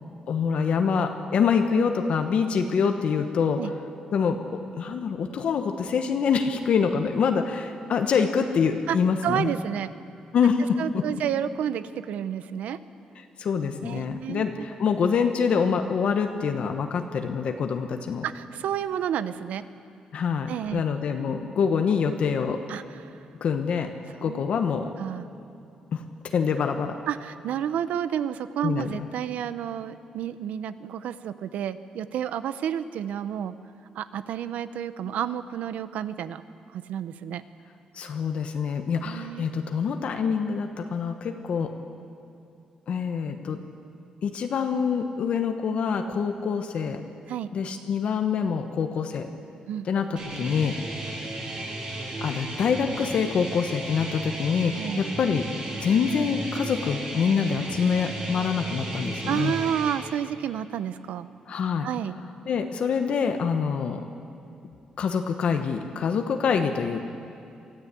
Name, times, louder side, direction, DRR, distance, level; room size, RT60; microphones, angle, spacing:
voice 1, 0.3-3.7 4.1-9.5 10.3-11.0 13.2-18.2 20.1-22.6 23.4-23.9 24.2-24.9 25.9-27.0 28.6-28.9 37.9-41.7 42.9-43.6 44.2-47.0 47.5-49.3 49.9-50.8 52.2-55.5 55.8-59.5 61.5-61.9 62.5-64.1 65.0-67.0, left 6 dB, 55° left, 5 dB, 1.1 m, -25 dB
voice 2, 9.2-9.9 10.8-12.8 13.8-14.4 18.2-19.6 20.5-20.8 22.7-23.2 24.2-24.4 25.0-25.3 27.1-33.5 33.9-36.4 36.7-37.4 39.0-39.5 47.3-47.5 49.7-49.9 54.8-55.0 59.3-61.3 61.8-62.2, right 9 dB, 90° right, 13 dB, 0.8 m, -30 dB
sound 1, 50.2-59.9, right 1 dB, 50° right, 6.2 m, -35 dB
24.0 x 14.5 x 8.3 m, 2.6 s
wide cardioid pair, 165°, 2 cm